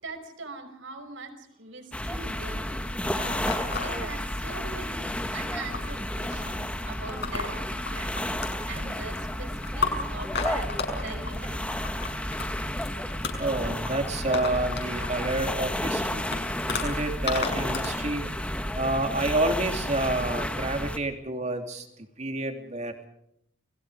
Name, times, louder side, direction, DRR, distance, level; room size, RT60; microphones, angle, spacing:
voice 1, 0.0-2.8 3.7-8.2 8.7-11.6, right 3 dB, 65° right, 5 dB, 5.5 m, -42 dB
sound 1, 1.9-21.0, left 1 dB, 5° left, 1.5 m, -32 dB
sound 2, 2.8-3.9 4.5-5.1 5.3-17.9, left 4 dB, 55° left, 6.3 m, -35 dB
voice 2, 13.4-16.3 16.7-21.9 22.2-23.1, right 2 dB, 35° right, 5 dB, 3.1 m, -29 dB
30.0 x 22.0 x 5.1 m, 0.74 s
head